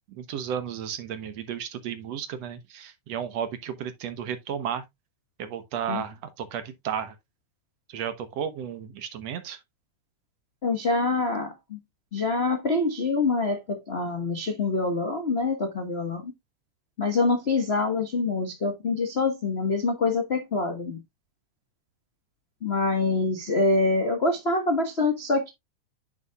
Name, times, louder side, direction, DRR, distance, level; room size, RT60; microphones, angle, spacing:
voice 1, 0.1-4.8 5.4-7.2 7.9-9.6, right 8 dB, 65° right, 2.0 m, -33 dB
voice 2, 10.6-11.8 12.1-16.3 17.0-21.0 22.6-25.5, left 3 dB, 70° left, 0.5 m, -25 dB
9.2 x 6.7 x 2.3 m
omnidirectional pair, 3.5 m